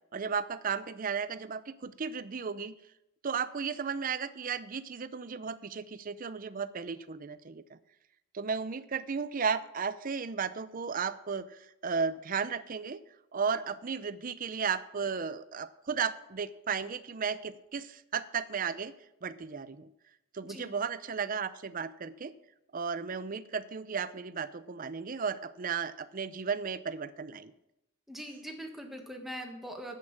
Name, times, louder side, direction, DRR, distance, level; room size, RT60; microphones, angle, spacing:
voice 1, 0.1-2.8 3.2-7.8 8.3-13.0 13.3-18.9 19.2-19.9 20.3-22.3 22.7-27.5, right 6 dB, 40° right, 13 dB, 0.5 m, -34 dB
voice 2, 28.1-29.9, equal, ahead, 2 dB, 1.4 m, -42 dB
9.6 x 8.4 x 5.9 m, 0.86 s
head